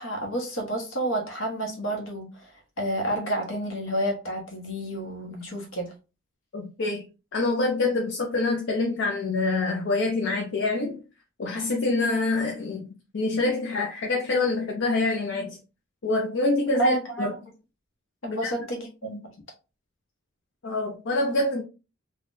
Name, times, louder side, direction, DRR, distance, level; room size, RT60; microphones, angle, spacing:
voice 1, 0.0-2.5 2.8-5.9 16.8-17.4 18.2-19.3, right 1 dB, 85° left, 1.1 m, -29 dB
voice 2, 6.5-7.0 7.3-11.0 11.4-12.9 13.1-15.6 16.0-17.3 18.3-18.5 20.6-21.6, left 2 dB, 65° left, 0.6 m, -26 dB
3.3 x 2.4 x 2.6 m
head